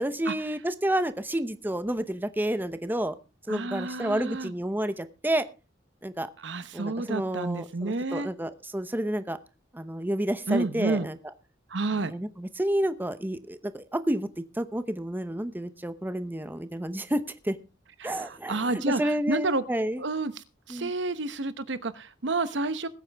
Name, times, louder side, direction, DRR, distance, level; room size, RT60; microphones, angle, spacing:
voice 1, 0.0-3.1 3.5-5.5 6.0-6.3 6.7-9.4 9.7-11.2 12.1-14.3 14.6-17.5 18.0-18.7 19.0-20.0 20.7-20.9, right 1 dB, 10° right, 11 dB, 0.8 m, -30 dB
voice 2, 3.5-4.5 6.4-8.3 10.5-11.1 11.7-12.1 18.0-19.6 20.0-22.9, right 2 dB, 70° right, 13 dB, 1.0 m, -30 dB
21.0 x 8.9 x 3.5 m, 0.30 s
head